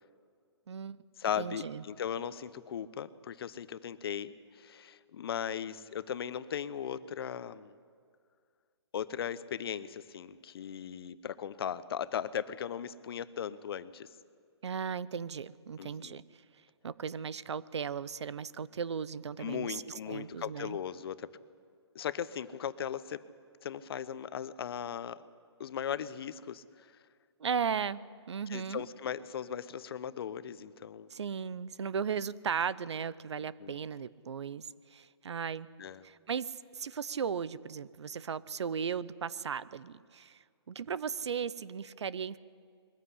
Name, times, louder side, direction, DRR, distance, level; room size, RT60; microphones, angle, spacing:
voice 1, 0.7-1.0 1.4-1.8 14.6-16.2 16.8-20.8 27.4-28.8 31.1-35.7 36.0-42.4, right 6 dB, 80° right, 19 dB, 0.8 m, -36 dB
voice 2, 1.2-7.8 8.9-14.1 15.8-16.2 19.4-21.3 21.9-23.2 23.6-25.2 25.6-27.0 28.5-31.1 33.4-33.7 35.8-36.0, left 8 dB, 60° left, 16 dB, 0.9 m, -38 dB
22.0 x 15.0 x 10.0 m, 2.2 s
hypercardioid pair, 145°, 14 cm